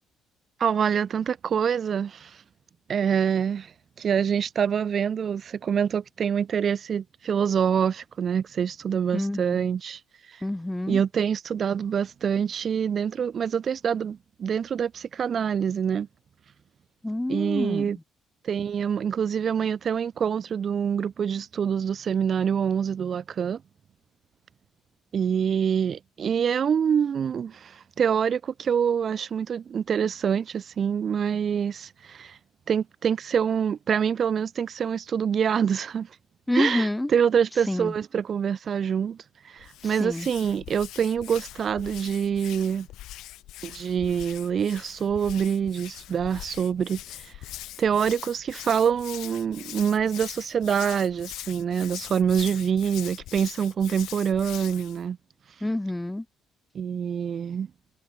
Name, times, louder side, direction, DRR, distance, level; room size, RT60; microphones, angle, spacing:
voice 1, 0.6-2.4 2.9-10.0 10.3-10.4 10.9-16.1 17.3-18.0 18.4-23.6 25.1-32.4 32.7-36.1 36.5-39.2 39.4-42.9 43.6-47.3 47.8-55.2 56.7-57.7, right 7 dB, 45° right, 0.6 m, -26 dB
voice 2, 9.1-9.6 10.4-11.0 17.0-17.9 36.5-37.1 37.7-37.9 40.0-40.3 55.6-56.2, left 1 dB, 10° left, 0.9 m, -27 dB
Hands, 39.6-55.0, left 15 dB, 75° left, 3.3 m, -42 dB
cardioid pair, 115°, 0 cm